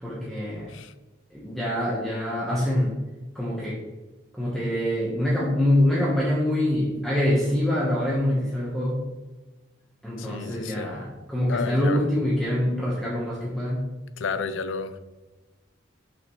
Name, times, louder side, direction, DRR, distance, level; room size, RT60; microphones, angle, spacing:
voice 1, 0.0-0.7 1.3-3.0 3.3-3.8 4.3-9.1 10.0-13.9, left 1 dB, ahead, -6 dB, 1.0 m, -25 dB
voice 2, 10.2-11.0 11.5-12.0 14.2-15.0, left 5 dB, 75° left, 11 dB, 0.5 m, -31 dB
6.0 x 5.9 x 3.0 m, 1.2 s
head